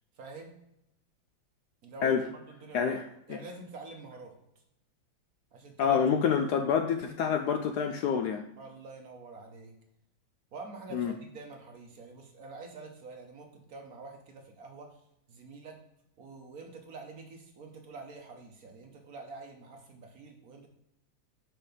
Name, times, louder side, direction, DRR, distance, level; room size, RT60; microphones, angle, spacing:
voice 1, 0.2-0.6 1.8-4.3 5.5-6.0 6.4-6.5 8.6-9.7 10.5-15.0 15.3-15.8 16.2-20.7, right 3 dB, 55° right, 3 dB, 1.2 m, -47 dB
voice 2, 5.8-8.5 10.9-11.1, left 7 dB, 75° left, 6 dB, 1.0 m, -27 dB
6.2 x 4.6 x 5.1 m, 0.81 s
omnidirectional pair, 2.1 m